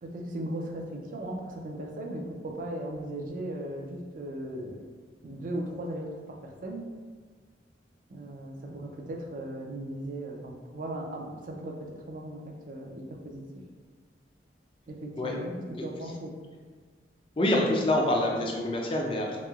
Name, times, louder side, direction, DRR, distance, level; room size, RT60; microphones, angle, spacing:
voice 1, 0.0-4.8 5.2-6.9 8.1-13.6 14.9-16.3, right 1 dB, 50° right, 1 dB, 0.4 m, -37 dB
voice 2, 17.4-19.4, left 1 dB, 30° left, 0 dB, 0.4 m, -26 dB
3.0 x 2.8 x 2.3 m, 1.5 s
head